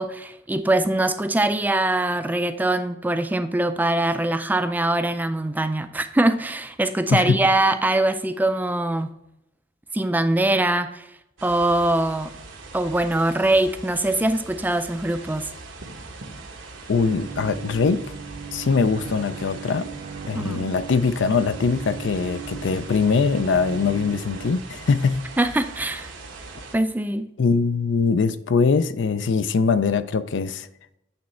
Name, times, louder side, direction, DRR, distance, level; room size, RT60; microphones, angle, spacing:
voice 1, 0.0-9.1 9.9-11.0 11.4-12.3 12.7-15.5 20.3-20.7 25.4-26.1 26.7-27.3, right 2 dB, 10° right, 0.4 m, -22 dB
sound 1, 11.4-26.8, right 3 dB, 85° right, 1.1 m, -41 dB
voice 2, 16.9-18.0 18.5-19.9 20.3-25.2 27.4-30.7, left 5 dB, 70° left, 0.4 m, -22 dB
Bowed string instrument, 17.0-24.5, right 7 dB, 50° right, 0.6 m, -38 dB
8.5 x 3.1 x 4.3 m
head